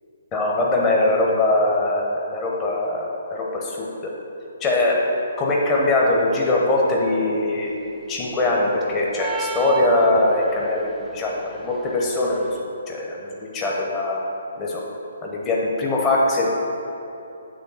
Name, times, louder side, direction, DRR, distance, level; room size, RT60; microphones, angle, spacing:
voice 1, 0.3-4.1 4.6-7.7 8.1-12.6 12.9-14.2 14.6-14.8 15.2-16.6, left 2 dB, 20° left, -2 dB, 0.9 m, -22 dB
sound 1, 9.2-10.6, right 6 dB, 15° right, 0.5 m, -30 dB
8.7 x 3.4 x 5.6 m, 2.9 s
figure-of-eight pair, 135°, 0 cm